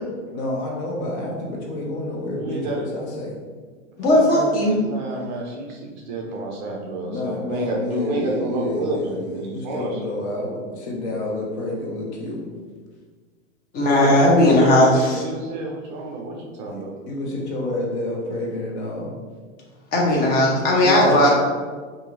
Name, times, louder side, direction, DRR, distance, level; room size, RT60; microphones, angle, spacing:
voice 1, 0.3-3.3 7.0-12.5 16.7-19.1 20.8-21.2, left 2 dB, 55° left, -2 dB, 1.1 m, -29 dB
voice 2, 2.4-2.8 4.0-10.1 13.8-17.0 21.0-21.3, right 2 dB, 35° right, -1 dB, 0.5 m, -29 dB
voice 3, 4.0-4.7 13.7-15.2 19.9-21.3, left 1 dB, 25° left, -2 dB, 0.7 m, -17 dB
4.4 x 2.7 x 2.5 m, 1.5 s
hypercardioid pair, 140°, 40 cm